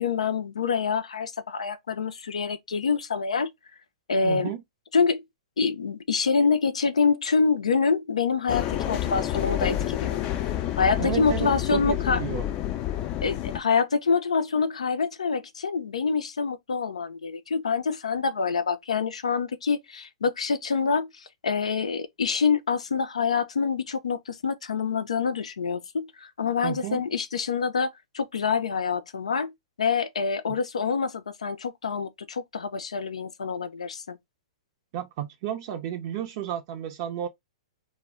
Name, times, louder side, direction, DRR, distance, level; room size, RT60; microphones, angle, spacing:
voice 1, 0.0-3.5 4.1-4.5 4.9-5.2 5.6-10.2 10.8-12.2 13.2-29.5 29.8-34.2, left 5 dB, 90° left, 0.4 m, -26 dB
voice 2, 4.2-4.6 11.0-12.5 26.6-27.0 34.9-37.3, right 10 dB, 50° right, 0.5 m, -32 dB
sound 1, 8.5-13.6, left 12 dB, 35° left, 0.4 m, -29 dB
2.1 x 2.0 x 3.5 m
hypercardioid pair, 125°, 3 cm